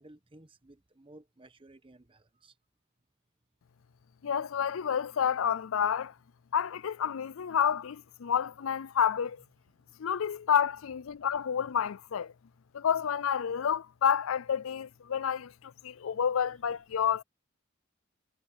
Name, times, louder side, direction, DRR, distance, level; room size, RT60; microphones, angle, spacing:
voice 1, 0.0-2.5, right 1 dB, 25° right, 1.1 m, -56 dB
voice 2, 4.2-6.1 6.5-9.4 10.0-12.3 12.7-17.2, left 8 dB, 80° left, 0.4 m, -29 dB
head